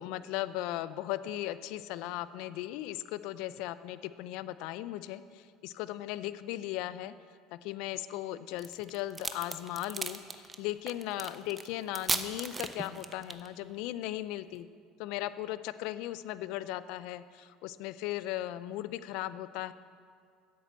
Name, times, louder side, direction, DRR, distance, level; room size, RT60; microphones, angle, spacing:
voice 1, 0.0-7.1 7.5-14.7 15.0-19.7, left 14 dB, 70° left, 14 dB, 0.5 m, -37 dB
sound 1, 8.6-13.5, right 4 dB, 25° right, 0.9 m, -35 dB
10.5 x 8.0 x 7.5 m, 2.2 s
hypercardioid pair, 80°, 0 cm